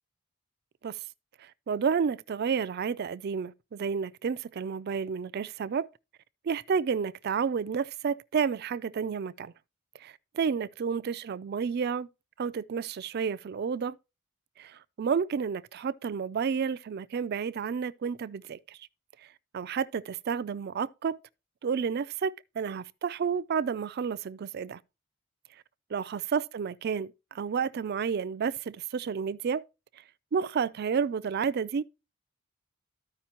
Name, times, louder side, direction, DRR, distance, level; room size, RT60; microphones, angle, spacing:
voice 1, 1.4-5.9 6.4-9.5 10.0-12.1 12.4-14.0 14.6-18.8 19.5-21.2 21.6-24.8 25.9-29.6 30.3-31.8, right 6 dB, 45° right, 0.3 m, -31 dB
13.5 x 5.0 x 2.9 m
head